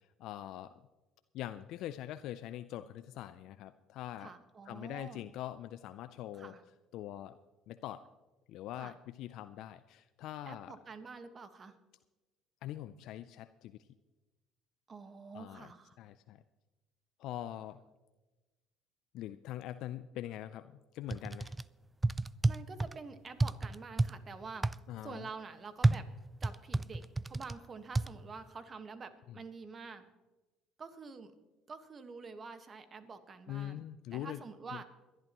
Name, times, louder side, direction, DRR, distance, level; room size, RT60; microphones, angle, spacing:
voice 1, 0.2-0.7 1.3-4.3 4.7-6.5 6.9-7.4 7.7-8.0 8.5-10.8 12.6-13.8 15.3-15.7 16.0-16.4 17.2-17.8 19.1-20.7 20.9-21.5 24.9-25.2 33.5-34.4, left 12 dB, 70° left, 12 dB, 0.4 m, -43 dB
voice 2, 4.2-5.2 6.3-6.6 8.7-8.9 10.5-11.8 14.9-16.0 22.5-24.7 25.0-26.1 26.4-30.0 30.8-31.3 31.7-33.8 34.1-34.8, right 4 dB, 35° right, 9 dB, 1.4 m, -47 dB
sound 1, 21.1-21.6 22.0-23.0 23.4-24.1 24.6-24.8 25.8-27.6 28.0-28.1, right 2 dB, 15° right, 0.3 m, -29 dB
22.0 x 11.5 x 3.0 m, 1.1 s
supercardioid pair, 80°, 0 cm